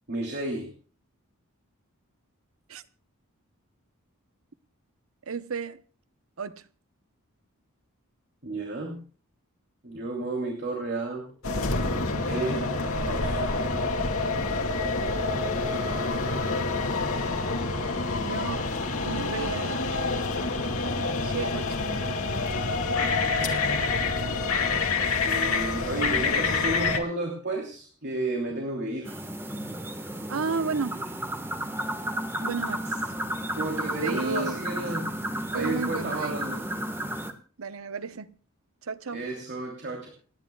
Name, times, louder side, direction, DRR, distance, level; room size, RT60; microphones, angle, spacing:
voice 1, 0.1-0.7 8.4-9.0 9.8-11.3 12.3-12.7 13.0-13.5 25.2-29.1 33.5-35.1 35.5-36.6 39.1-40.1, right 2 dB, 50° right, 3.0 m, -32 dB
voice 2, 5.3-5.8 6.4-6.6 18.2-18.6 19.0-19.8 21.2-21.8 30.3-31.0 32.4-33.1 34.0-34.6 34.9-35.0 35.5-36.4 37.6-38.3 38.8-39.2, right 5 dB, 75° right, 0.9 m, -33 dB
sound 1, 11.4-27.0, left 3 dB, 80° left, 2.3 m, -27 dB
sound 2, 29.0-37.3, right 1 dB, 10° right, 1.4 m, -33 dB
29.0 x 10.5 x 2.3 m
head